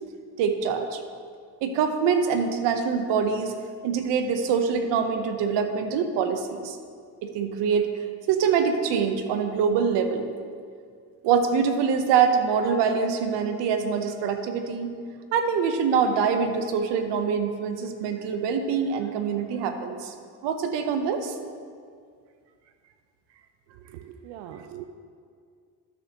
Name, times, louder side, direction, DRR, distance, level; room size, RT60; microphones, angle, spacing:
voice 1, 0.4-1.0 1.6-3.5 3.8-6.8 7.2-7.9 8.3-10.3 11.2-14.9 15.3-20.1 20.4-21.3, right 6 dB, 70° right, 7 dB, 1.0 m, -24 dB
voice 2, 23.9-24.9, right 11 dB, 90° right, 6 dB, 0.5 m, -41 dB
12.5 x 6.7 x 3.0 m, 2.2 s
supercardioid pair, 75°, 43 cm